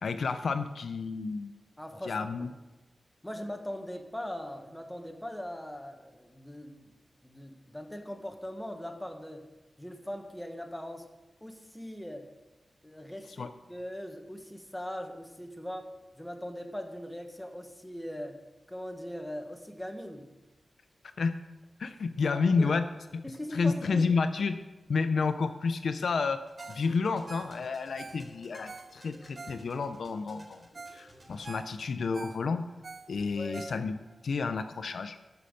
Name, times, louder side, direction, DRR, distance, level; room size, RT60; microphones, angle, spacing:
voice 1, 0.0-1.5 2.0-2.5 13.3-13.5 21.2-21.4 21.8-23.2 23.5-24.6 24.9-26.4 26.7-32.7 33.1-34.0 34.2-35.2, left 4 dB, 70° left, 10 dB, 0.6 m, -30 dB
voice 2, 1.8-2.5 3.2-6.9 7.2-9.5 9.8-11.1 11.4-12.3 12.8-15.9 16.2-18.4 18.7-20.3 22.3-22.7 23.2-24.1 30.7-30.8 33.3-33.6, equal, 5° left, 4 dB, 1.4 m, -40 dB
sound 1, 26.4-31.8, right 1 dB, 20° right, 3.7 m, -56 dB
Ringtone, 26.6-26.9 27.1-30.0 30.4-30.5 30.7-31.0 31.3-34.2 34.6-34.7, right 4 dB, 45° right, 0.4 m, -47 dB
13.5 x 5.7 x 6.5 m, 1.1 s
wide cardioid pair, 95°, 0 cm